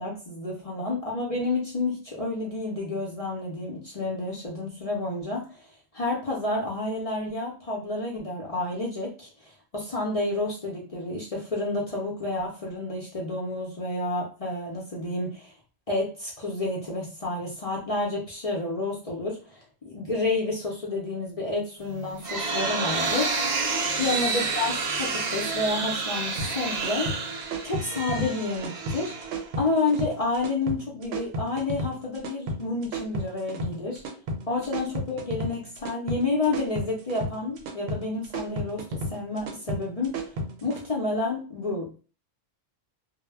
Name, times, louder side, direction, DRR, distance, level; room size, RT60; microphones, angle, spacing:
voice 1, 0.0-5.7 5.9-15.5 15.9-23.4 24.0-27.2 27.6-29.1 29.6-34.0 34.5-40.3 40.6-42.0, left 2 dB, 50° left, -3 dB, 0.4 m, -30 dB
sound 1, 21.9-29.7, right 4 dB, 60° right, 0.4 m, -29 dB
sound 2, 26.4-40.8, right 1 dB, 80° right, 0.9 m, -33 dB
2.1 x 2.0 x 3.3 m, 0.36 s
omnidirectional pair, 1.3 m